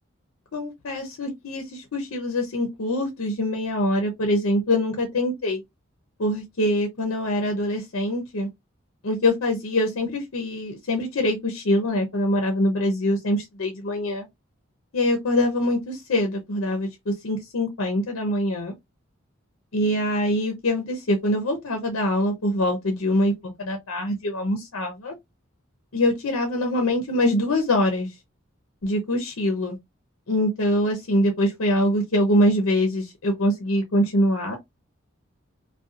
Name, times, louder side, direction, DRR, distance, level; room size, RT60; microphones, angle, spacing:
voice 1, 0.5-5.6 6.2-8.5 9.0-14.3 14.9-18.7 19.7-25.1 25.9-28.1 28.8-29.8 30.3-34.6, left 1 dB, 90° left, 0.6 m, -24 dB
2.6 x 2.2 x 2.4 m
head